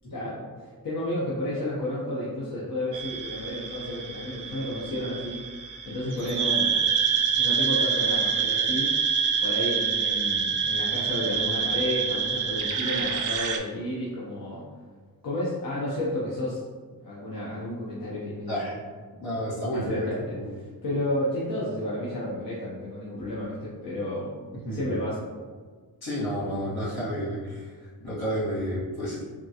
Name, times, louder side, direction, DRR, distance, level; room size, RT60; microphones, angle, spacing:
voice 1, 0.1-5.4 5.9-6.8 7.3-8.9 9.4-14.6 15.2-16.6 17.0-18.7 19.7-24.3 24.7-25.2, left 1 dB, 60° left, -7 dB, 0.7 m, -31 dB
sound 1, 2.9-13.6, right 6 dB, 55° right, 0.4 m, -27 dB
voice 2, 19.2-20.5 24.6-24.9 26.0-29.2, equal, 80° left, -8 dB, 1.4 m, -31 dB
3.6 x 2.4 x 2.7 m, 1.6 s
wide cardioid pair, 95°, 37 cm